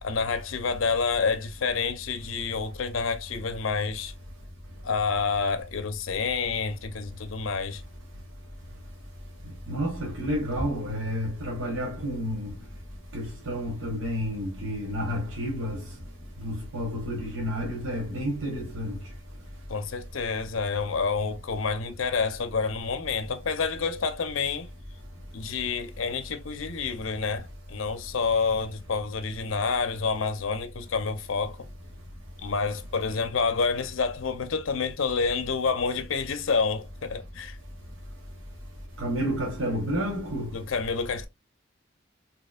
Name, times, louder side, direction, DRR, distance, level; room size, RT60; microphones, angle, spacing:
voice 1, 0.0-4.1 4.8-7.8 19.7-24.7 25.3-31.6 32.4-37.6 40.5-41.3, left 5 dB, 80° left, 0.6 m, -28 dB
voice 2, 9.7-12.5 13.1-15.8 16.4-19.0 39.0-40.5, equal, 75° right, 1.0 m, -30 dB
4.2 x 2.8 x 2.3 m
head